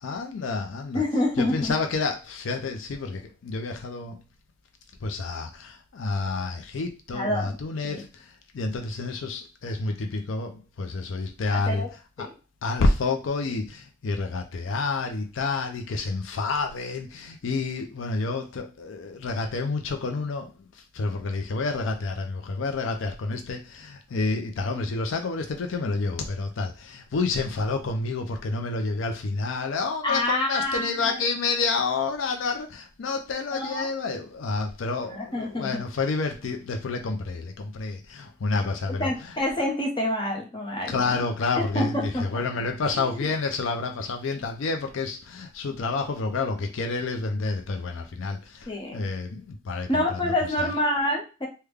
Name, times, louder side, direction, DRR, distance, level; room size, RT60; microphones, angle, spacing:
voice 1, 0.0-1.0 1.4-4.2 5.0-11.8 12.2-12.3 12.6-39.3 40.9-50.3 50.6-50.7, left 3 dB, 75° left, 0.4 m, -29 dB
voice 2, 0.9-1.7 7.1-7.6 7.8-8.0 11.5-11.9 12.2-12.3 30.0-31.2 33.5-33.9 35.1-35.8 39.0-41.2 41.5-42.3 42.9-43.3 48.7-49.0 49.9-51.5, left 1 dB, 25° left, 0.9 m, -27 dB
3.4 x 2.2 x 3.3 m
head